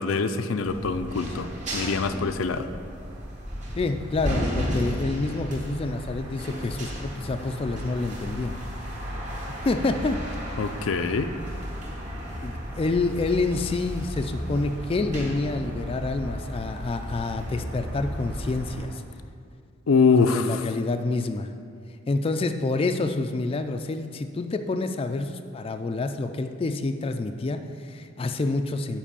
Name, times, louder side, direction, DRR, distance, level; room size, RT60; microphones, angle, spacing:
voice 1, 0.0-2.7 10.6-11.3 19.9-20.7, left 4 dB, 85° left, 9 dB, 0.5 m, -24 dB
sound 1, 0.6-18.8, equal, 40° right, 1.9 m, -34 dB
voice 2, 3.8-8.6 9.5-10.2 12.4-19.0 20.2-21.5 22.1-29.0, left 3 dB, 30° left, 7 dB, 0.3 m, -28 dB
7.4 x 5.3 x 6.8 m, 2.2 s
head